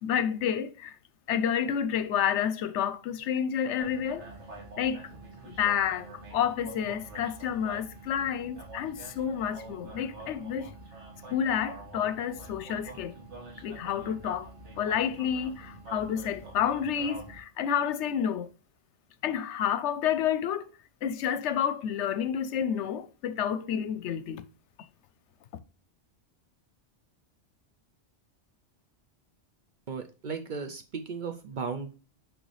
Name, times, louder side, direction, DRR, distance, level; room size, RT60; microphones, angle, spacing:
voice 1, 0.0-0.9 1.3-4.3 4.8-5.1 5.5-10.7 11.3-13.1 13.6-14.5 14.8-18.5 19.2-20.7 21.0-24.5, left 8 dB, 75° left, 0.9 m, -29 dB
sound 1, 3.8-17.4, right 2 dB, 75° right, 1.7 m, -46 dB
voice 2, 29.9-31.9, right 5 dB, 50° right, 0.6 m, -36 dB
6.3 x 4.7 x 3.2 m
omnidirectional pair, 1.2 m